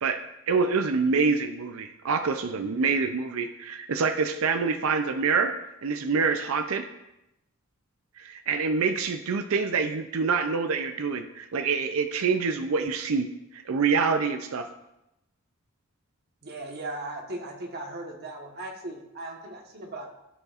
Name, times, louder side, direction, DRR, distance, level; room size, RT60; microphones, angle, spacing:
voice 1, 0.0-5.5 5.8-6.9 8.2-13.3 13.5-14.7, right 5 dB, 80° right, 8 dB, 0.5 m, -26 dB
voice 2, 16.4-20.1, right 2 dB, 50° right, 1 dB, 1.3 m, -37 dB
14.0 x 5.4 x 2.5 m, 0.90 s
head